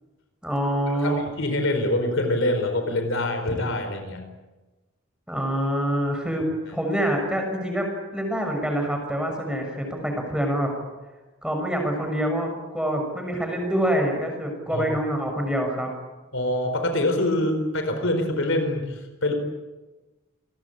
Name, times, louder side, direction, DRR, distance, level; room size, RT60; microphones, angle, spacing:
voice 1, 0.4-1.2 5.3-7.9 8.1-10.7 11.4-15.9, equal, 5° right, 2 dB, 6.5 m, -26 dB
voice 2, 0.9-4.2 6.8-6.9 14.7-14.9 16.3-19.3, left 1 dB, 60° left, 6 dB, 4.5 m, -25 dB
28.5 x 20.5 x 8.8 m, 1.2 s
head